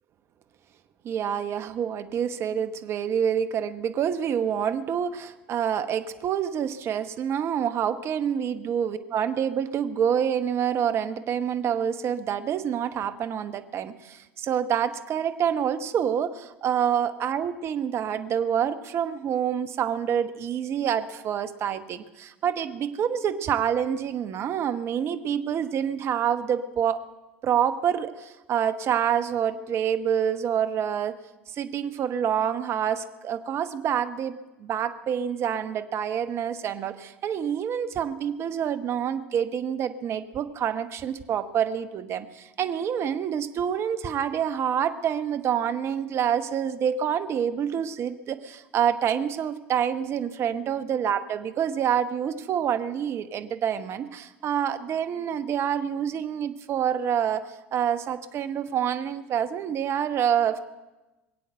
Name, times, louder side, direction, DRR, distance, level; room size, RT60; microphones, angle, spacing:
voice 1, 1.0-27.0 27.4-31.2 31.5-60.6, right 8 dB, 45° right, 10 dB, 1.1 m, -27 dB
22.0 x 8.4 x 7.8 m, 1.1 s
hypercardioid pair, 75°, 6 cm